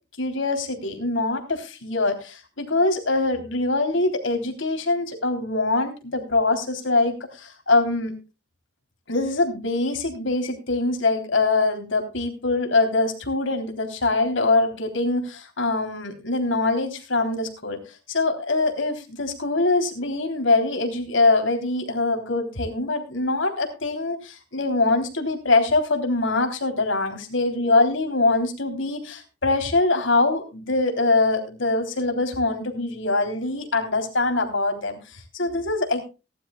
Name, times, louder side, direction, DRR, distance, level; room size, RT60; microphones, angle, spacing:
voice 1, 0.2-8.1 9.1-36.0, left 3 dB, 75° left, 4 dB, 3.5 m, -23 dB
19.0 x 12.5 x 2.4 m, 0.31 s
head